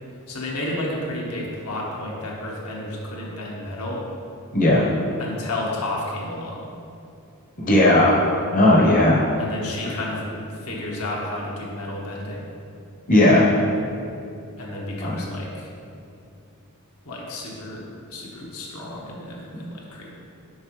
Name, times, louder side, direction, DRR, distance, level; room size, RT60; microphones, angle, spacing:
voice 1, 0.3-4.0 5.2-6.7 9.4-12.5 14.6-15.7 17.0-20.1, left 1 dB, 85° left, -3 dB, 1.2 m, -31 dB
voice 2, 4.5-4.8 7.6-8.2 8.5-9.3 13.1-13.5 15.0-15.1, left 1 dB, 35° left, -4 dB, 0.8 m, -16 dB
7.3 x 5.0 x 3.1 m, 2.6 s
head